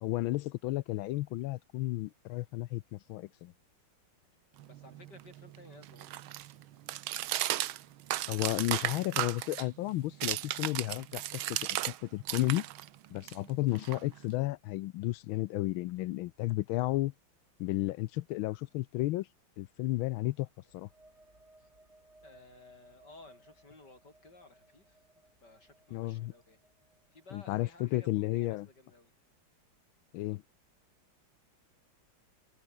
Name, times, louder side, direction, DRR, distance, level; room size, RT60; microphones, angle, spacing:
voice 1, 0.0-3.5 8.3-11.2 11.5-11.6 11.9-12.7 13.1-17.1 17.6-19.3 19.6-20.5 20.7-20.9 25.9-26.3 27.3-28.7 30.1-30.4, left 17 dB, 80° left, 1.4 m, -33 dB
voice 2, 4.6-6.2 10.1-10.3 21.6-21.7 22.2-25.0 25.4-26.6 27.1-29.1, left 2 dB, 55° left, 7.1 m, -56 dB
sound 1, 4.6-12.0 12.2-14.4, right 14 dB, 85° right, 1.6 m, -36 dB
sound 2, 20.5-28.1, right 1 dB, 30° right, 7.4 m, -63 dB
omnidirectional pair, 2.2 m